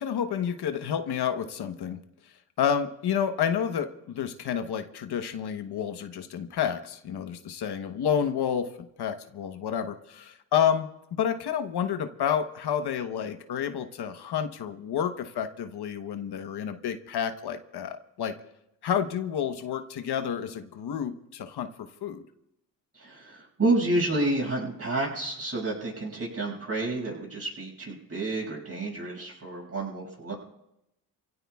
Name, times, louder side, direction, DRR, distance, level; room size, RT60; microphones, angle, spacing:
voice 1, 0.0-2.0 2.6-8.7 9.0-18.3 18.8-22.2, left 8 dB, 70° left, 8 dB, 1.1 m, -30 dB
voice 2, 22.9-30.3, right 2 dB, 35° right, -3 dB, 6.6 m, -29 dB
28.0 x 16.5 x 2.4 m, 0.84 s
cardioid pair, 70°, 41 cm